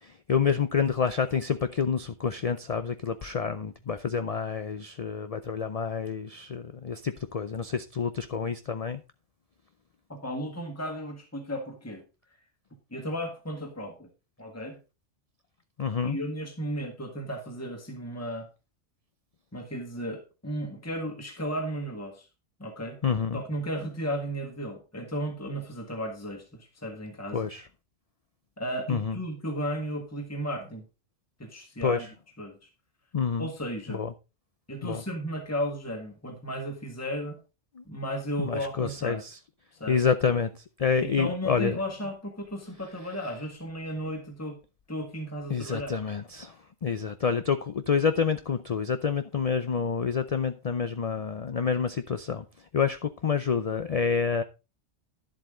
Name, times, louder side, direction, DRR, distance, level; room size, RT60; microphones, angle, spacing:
voice 1, 0.0-9.0 15.8-16.2 23.0-23.4 27.3-27.7 28.9-29.2 31.8-32.1 33.1-33.5 33.9-34.1 34.8-35.0 37.7-37.8 38.4-39.4 39.9-41.8 45.5-52.5 52.7-54.4, left 6 dB, 45° left, 0.5 m, -28 dB
voice 2, 10.1-12.0 12.9-14.1 14.4-14.8 16.0-18.5 19.5-22.3 22.6-23.0 23.3-27.4 28.6-30.8 31.4-32.1 32.4-32.7 33.4-34.0 34.7-37.4 37.9-39.2 39.8-40.0 41.0-44.6 44.9-45.9, equal, 15° left, 1.8 m, -34 dB
11.0 x 7.7 x 3.8 m
omnidirectional pair, 1.2 m